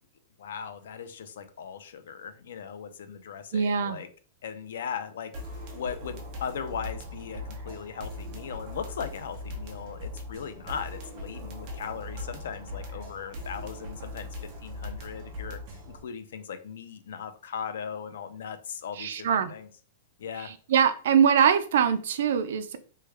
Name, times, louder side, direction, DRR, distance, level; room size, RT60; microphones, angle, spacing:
voice 1, 0.4-4.1 4.4-5.3 5.7-19.7 20.2-20.5, left 7 dB, 70° left, 9 dB, 0.5 m, -38 dB
voice 2, 3.5-4.0 19.0-19.5 20.4-22.8, right 7 dB, 65° right, 9 dB, 0.4 m, -23 dB
sound 1, 5.3-16.0, left 1 dB, 35° right, 0.7 m, -40 dB
3.2 x 2.2 x 3.3 m, 0.40 s
supercardioid pair, 170°, 0 cm